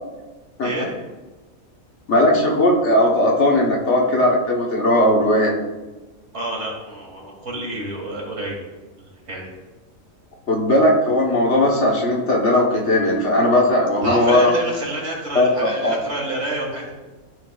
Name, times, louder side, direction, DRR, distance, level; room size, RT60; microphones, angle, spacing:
voice 1, 2.1-5.5 10.5-14.5 15.3-16.0, left 1 dB, 60° left, -1 dB, 1.5 m, -17 dB
voice 2, 6.3-8.6 9.0-9.5 14.0-16.9, right 1 dB, 60° right, -2 dB, 2.3 m, -28 dB
13.0 x 4.8 x 2.4 m, 1.2 s
omnidirectional pair, 1.4 m